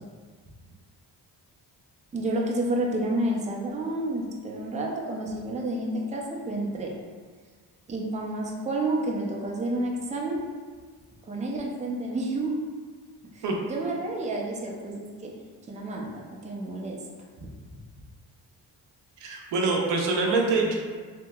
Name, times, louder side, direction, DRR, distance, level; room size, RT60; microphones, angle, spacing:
voice 1, 2.1-6.9 7.9-10.4 11.3-12.6 13.3-15.3 15.7-16.1 16.4-17.0 17.4-17.5, right 1 dB, 20° right, -1 dB, 0.4 m, -30 dB
voice 2, 19.2-20.8, right 3 dB, 85° right, -1 dB, 0.6 m, -24 dB
2.8 x 2.7 x 2.3 m, 1.5 s
cardioid pair, 70°, 41 cm